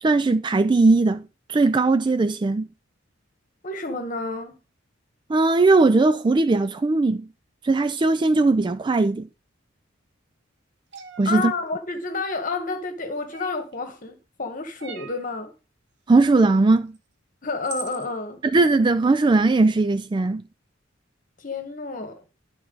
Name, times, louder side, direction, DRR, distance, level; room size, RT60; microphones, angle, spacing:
voice 1, 0.0-1.2 1.5-2.7 5.3-7.3 7.6-9.3 11.2-11.5 16.1-16.9 18.4-20.4, right 3 dB, 25° right, 0.3 m, -19 dB
voice 2, 3.6-4.6 11.2-15.5 17.4-18.4 21.4-22.2, left 3 dB, 45° left, 1.4 m, -30 dB
sound 1, 10.9-11.3 13.3-13.8 14.8-15.3 16.9-17.0 17.6-18.1, right 6 dB, 60° right, 1.0 m, -39 dB
11.5 x 4.5 x 3.9 m
head